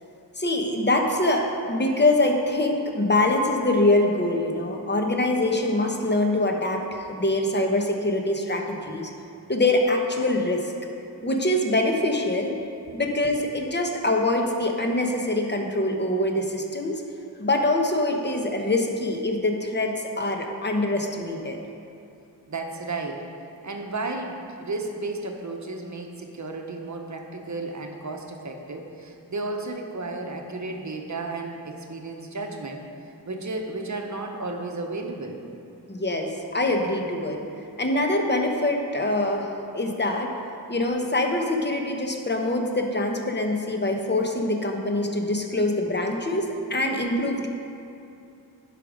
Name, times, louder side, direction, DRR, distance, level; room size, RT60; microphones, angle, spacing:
voice 1, 0.4-9.1 9.5-10.7 11.2-12.6 12.9-17.0 17.4-21.6 35.9-37.4 37.8-40.3 40.7-47.5, left 2 dB, 25° left, 2 dB, 0.9 m, -24 dB
voice 2, 22.5-23.3 23.6-32.8 33.3-35.4, right 2 dB, 45° right, 3 dB, 0.9 m, -33 dB
11.0 x 5.1 x 5.1 m, 2.6 s
wide cardioid pair, 80°, 41 cm